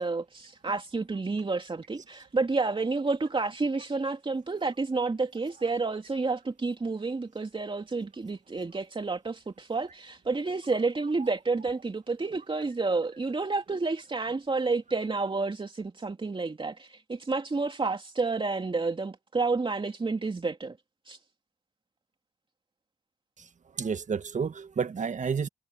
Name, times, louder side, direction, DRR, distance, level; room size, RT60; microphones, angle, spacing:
voice 1, 0.0-20.8 21.1-21.2, right 3 dB, 30° right, 2.7 m, -30 dB
voice 2, 23.4-25.5, right 6 dB, 45° right, 1.7 m, -31 dB
hypercardioid pair, 40°, 17 cm